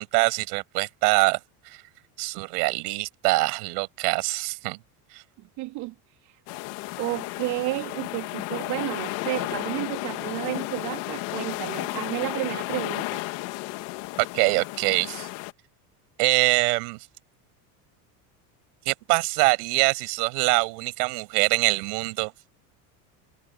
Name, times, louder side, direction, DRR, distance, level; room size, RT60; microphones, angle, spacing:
voice 1, 0.0-1.4 1.6-1.8 2.2-4.8 5.1-5.2 14.2-15.3 16.2-17.0 18.8-22.3, right 28 dB, 75° right, 6.3 m, -24 dB
voice 2, 5.4-5.9 6.2-6.4 7.0-13.2, right 21 dB, 60° right, 3.1 m, -32 dB
sound 1, 6.5-15.5, left 22 dB, 65° left, 2.2 m, -33 dB
supercardioid pair, 135°, 46 cm